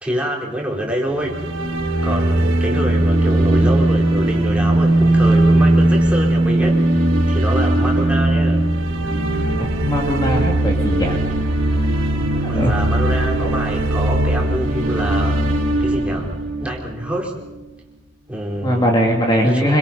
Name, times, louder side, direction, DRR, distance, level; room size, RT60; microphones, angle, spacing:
voice 1, 0.0-1.4 2.0-8.7 9.3-9.5 12.3-15.4 15.8-16.3 16.6-17.4 18.3-18.9 19.4-19.8, equal, 5° right, -2 dB, 4.3 m, -26 dB
sound 1, 1.1-17.2, right 1 dB, 90° right, 3.7 m, -18 dB
voice 2, 9.6-11.2 12.5-12.7 18.6-19.8, equal, 20° left, 0 dB, 2.4 m, -19 dB
26.0 x 25.5 x 5.4 m, 1.0 s
head